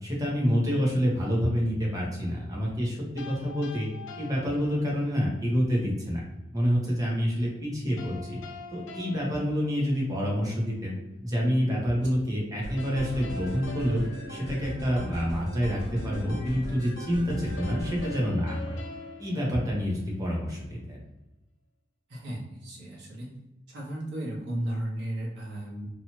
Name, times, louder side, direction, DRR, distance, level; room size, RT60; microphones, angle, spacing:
voice 1, 0.0-3.9 4.2-6.2 6.5-8.4 8.7-10.9 11.2-14.0 14.3-18.8 19.2-21.0, equal, 20° right, -4 dB, 0.8 m, -27 dB
sound 1, 3.2-5.3 8.0-10.4 12.8-15.3 17.6-20.4, left 2 dB, 85° left, 0.4 m, -44 dB
sound 2, 12.6-18.1, equal, 55° left, 0.9 m, -38 dB
voice 2, 22.1-23.3 23.7-25.9, right 1 dB, 65° right, -5 dB, 1.0 m, -34 dB
2.7 x 2.4 x 2.9 m, 0.97 s
head